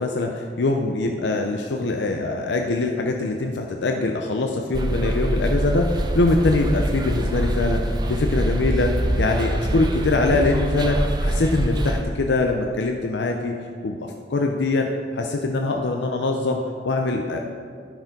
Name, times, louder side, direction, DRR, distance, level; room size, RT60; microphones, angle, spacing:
voice 1, 0.0-7.8 8.1-13.5 13.8-17.4, left 2 dB, 75° left, 2 dB, 0.6 m, -23 dB
sound 1, 4.7-12.0, right 1 dB, 25° right, 0.6 m, -24 dB
11.0 x 4.9 x 5.2 m, 2.2 s
head